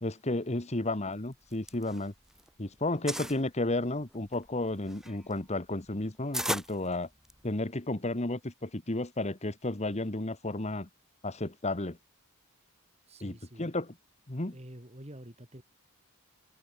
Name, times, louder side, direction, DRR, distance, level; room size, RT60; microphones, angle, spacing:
voice 1, 0.0-2.1 2.6-7.1 7.4-10.9 11.2-12.0 13.2-13.9 14.3-14.6, left 2 dB, 30° left, 1.5 m, -32 dB
sound 1, 1.3-2.5 2.8-3.4 4.0-7.6, right 1 dB, ahead, 0.8 m, -37 dB
voice 2, 13.1-13.7 14.5-15.6, right 1 dB, 30° right, 4.3 m, -48 dB
head